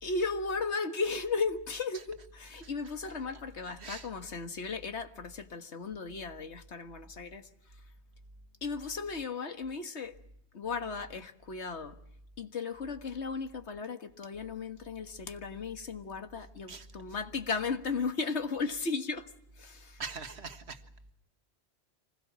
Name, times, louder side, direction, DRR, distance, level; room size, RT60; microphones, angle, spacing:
voice 1, 0.0-7.8 8.6-10.2 10.5-12.0 12.4-19.3 19.6-20.0, left 4 dB, 90° left, 1.8 m, -36 dB
voice 2, 20.0-20.8, right 5 dB, 75° right, 1.8 m, -42 dB
25.5 x 20.5 x 7.5 m
omnidirectional pair, 1.1 m